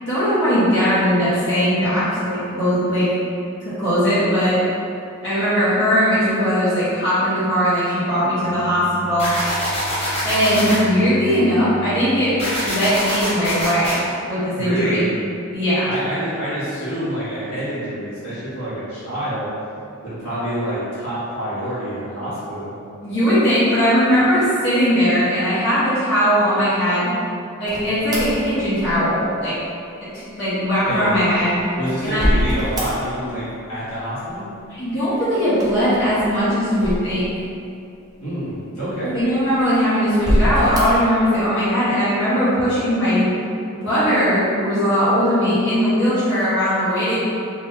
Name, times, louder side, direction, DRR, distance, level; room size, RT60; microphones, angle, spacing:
voice 1, 0.0-3.1 3.6-4.6 5.2-9.3 10.2-12.3 12.6-15.0 15.5-15.9 23.0-27.1 27.6-29.5 30.1-31.5 32.0-32.3 34.7-37.3 39.0-43.3 43.7-47.2, equal, 55° left, -13 dB, 1.2 m, -19 dB
Bowed string instrument, 8.4-13.6, right 2 dB, 80° right, 0.4 m, -37 dB
sound 1, 9.2-10.8 12.4-14.0, equal, 30° left, 1.0 m, -24 dB
voice 2, 14.5-15.1 15.8-19.5 20.0-22.7 30.8-31.2 31.8-34.5 38.2-39.2, right 1 dB, 85° left, -12 dB, 1.3 m, -27 dB
sound 2, 27.6-29.3 31.1-33.4 33.6-34.3 35.5-37.6 38.2-38.3 39.1-39.7 40.1-41.1, equal, 20° right, 0.5 m, -24 dB
3.6 x 2.6 x 2.7 m, 2.6 s
head